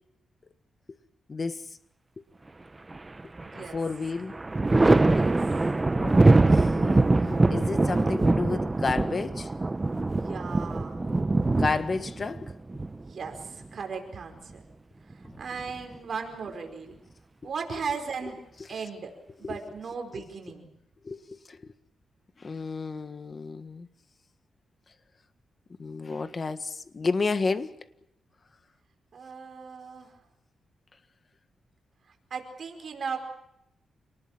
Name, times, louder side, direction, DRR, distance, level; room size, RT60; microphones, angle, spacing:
voice 1, 1.3-1.7 2.2-2.3 3.5-4.4 4.6-4.7 6.0-6.2 6.5-9.5 11.5-12.5 18.6-18.7 19.4-19.6 21.0-21.7 22.4-23.9 25.8-27.8, left 4 dB, 35° left, 1.6 m, -31 dB
Thunder, 2.9-3.7 4.0-13.6 15.1-16.0, right 2 dB, 20° right, 0.9 m, -23 dB
voice 2, 3.4-3.8 5.1-5.4 10.1-11.0 13.0-14.6 15.4-17.0 17.4-18.4 18.7-20.7 29.1-30.2 32.3-33.2, right 5 dB, 55° right, 4.9 m, -37 dB
28.0 x 19.5 x 7.4 m
cardioid pair, 105°, 0 cm